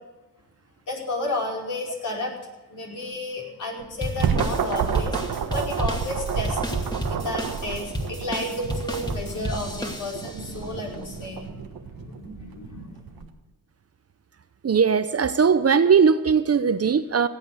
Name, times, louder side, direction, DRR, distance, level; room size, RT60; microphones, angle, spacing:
voice 1, 0.9-2.3 2.7-6.6 6.9-13.2, left 2 dB, 60° left, 5.1 m, -32 dB
sound 1, 3.8-13.3, right 7 dB, 75° right, 1.4 m, -30 dB
sound 2, 4.0-10.5, equal, 10° left, 2.6 m, -32 dB
voice 2, 14.6-17.3, right 6 dB, 45° right, 0.9 m, -19 dB
17.5 x 8.6 x 8.0 m
cardioid pair, 65°, 35 cm